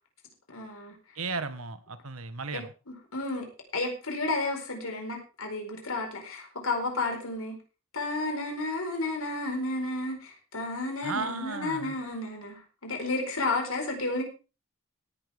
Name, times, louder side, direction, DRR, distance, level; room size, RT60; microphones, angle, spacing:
voice 1, 0.5-0.9 2.5-3.5 3.7-7.6 7.9-14.2, left 2 dB, 80° left, 2 dB, 4.6 m, -32 dB
voice 2, 1.1-2.7 11.0-11.9, right 4 dB, 80° right, 11 dB, 1.5 m, -35 dB
18.0 x 10.0 x 3.6 m, 0.32 s
head